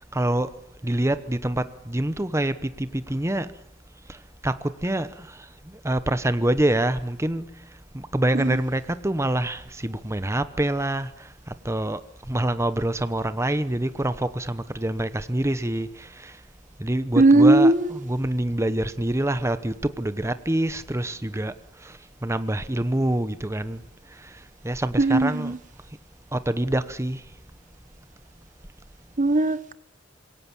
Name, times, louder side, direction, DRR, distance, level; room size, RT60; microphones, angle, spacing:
voice 1, 0.1-0.5 0.8-3.5 4.4-5.4 5.8-7.6 7.9-12.0 12.3-16.3 16.8-21.5 21.8-21.9 22.2-23.8 24.6-25.5 26.3-27.2, right 1 dB, 15° right, 1.0 m, -26 dB
voice 2, 17.2-18.0 25.0-25.6 29.2-29.7, right 2 dB, 45° right, 0.9 m, -18 dB
26.5 x 22.0 x 7.3 m
head